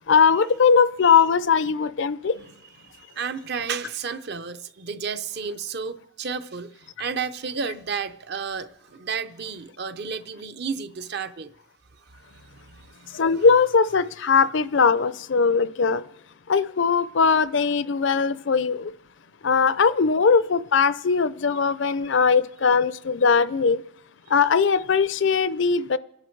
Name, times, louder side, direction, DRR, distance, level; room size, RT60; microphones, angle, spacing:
voice 1, 0.1-2.4 13.1-16.0 16.5-18.9 19.4-23.8 24.3-26.0, left 5 dB, 55° left, 0.5 m, -20 dB
voice 2, 2.8-11.5 12.1-13.2, right 5 dB, 50° right, 0.7 m, -32 dB
28.5 x 10.5 x 4.6 m
head